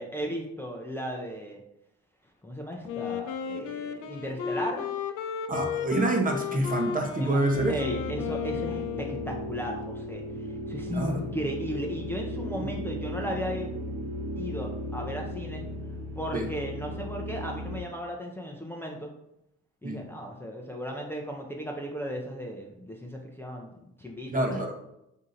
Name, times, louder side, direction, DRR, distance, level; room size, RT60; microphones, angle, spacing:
voice 1, 0.0-1.6 2.4-4.9 7.2-7.4 7.7-13.8 14.1-15.6 16.1-19.1 19.8-23.7 24.0-24.6, equal, 5° left, 0 dB, 0.5 m, -36 dB
Wind instrument woodwind instrument, 2.9-9.6, left 7 dB, 90° left, 0.5 m, -34 dB
voice 2, 5.5-7.7 10.9-11.2 12.5-12.7 16.3-16.5 19.8-20.0 24.3-24.7, right 1 dB, 30° right, 3 dB, 0.7 m, -27 dB
sound 1, 7.5-17.8, equal, 70° right, 1.1 m, -36 dB
3.6 x 2.8 x 3.8 m, 0.83 s
cardioid pair, 90°, 30 cm